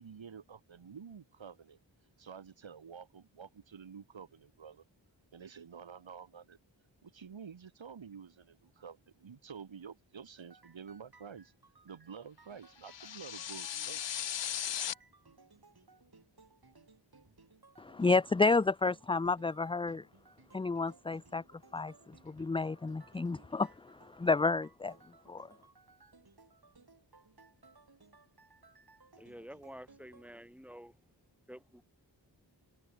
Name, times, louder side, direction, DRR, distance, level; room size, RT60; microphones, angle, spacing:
voice 1, 0.0-1.8 2.2-4.8 5.3-6.6 7.0-11.5 11.8-14.3, right 7 dB, 85° right, 2.4 m, -50 dB
sound 1, 10.4-30.3, right 3 dB, 55° right, 6.6 m, -62 dB
sound 2, 12.8-14.9, left 10 dB, 70° left, 0.7 m, -37 dB
voice 2, 17.8-20.0 20.5-21.4 21.7-24.9 25.3-25.5, left 3 dB, 15° left, 0.4 m, -30 dB
voice 3, 29.2-31.0 31.5-31.8, equal, 5° right, 5.9 m, -50 dB
cardioid pair, 40°, 45 cm